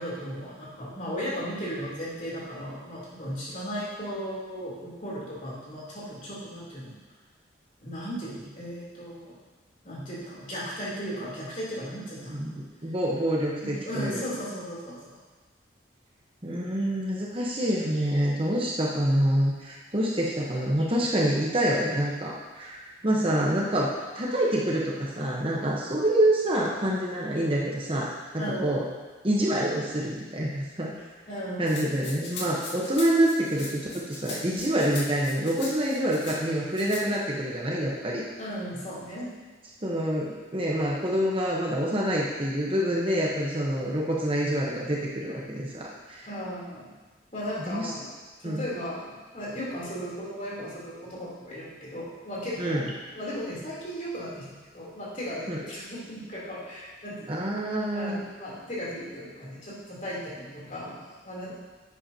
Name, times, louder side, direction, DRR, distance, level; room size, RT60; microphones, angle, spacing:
voice 1, 0.0-7.0 7.8-9.4 9.8-12.4 13.6-15.2 25.5-25.6 28.4-28.9 31.3-31.8 38.4-39.3 46.2-46.9 47.3-48.1 48.4-49.1 49.3-57.3 57.9-61.0 61.2-61.5, equal, 40° left, -7 dB, 3.2 m, -36 dB
voice 2, 12.3-14.2 16.4-28.9 29.2-30.9 31.6-33.8 34.1-38.2 39.8-46.3 47.7-47.9 48.4-48.7 52.6-52.8 55.5-55.6 57.3-58.2, right 1 dB, 30° right, -3 dB, 1.0 m, -27 dB
Rattle (instrument), 31.7-36.4 36.7-37.0, left 2 dB, 65° left, 2.0 m, -40 dB
10.5 x 9.0 x 2.8 m, 1.3 s
head